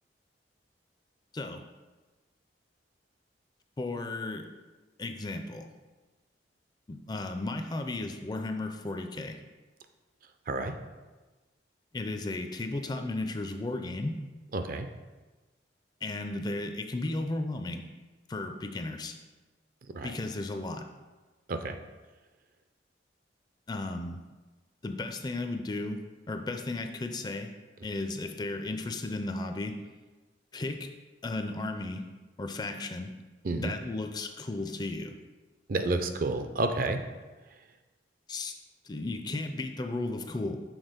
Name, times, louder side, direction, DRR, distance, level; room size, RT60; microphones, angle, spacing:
voice 1, 3.8-4.5 5.0-5.7 6.9-9.4 11.9-14.2 16.0-17.8 18.3-19.1 20.0-20.9 23.7-24.2 24.8-26.0 26.3-27.5 27.8-29.7 30.5-30.9 31.2-32.0 32.4-33.1 33.6-35.1 38.3-38.5 38.8-40.6, left 2 dB, 20° left, 6 dB, 0.4 m, -34 dB
voice 2, 14.5-14.9 19.9-20.1 21.5-21.8 33.4-33.7 35.7-37.0, right 2 dB, 50° right, 7 dB, 0.4 m, -30 dB
6.2 x 3.9 x 5.1 m, 1.2 s
head